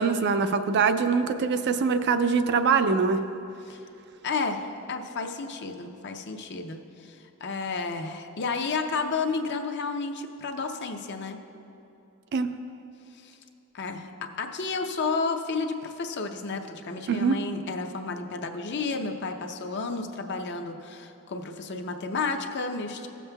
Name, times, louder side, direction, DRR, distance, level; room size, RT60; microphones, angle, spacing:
voice 1, 0.0-3.2 12.3-12.5 17.1-17.4, right 5 dB, 50° right, 9 dB, 0.4 m, -23 dB
voice 2, 4.2-11.4 13.2-13.4 13.7-23.1, left 4 dB, 50° left, 5 dB, 0.6 m, -32 dB
17.0 x 7.2 x 2.3 m, 2.9 s
head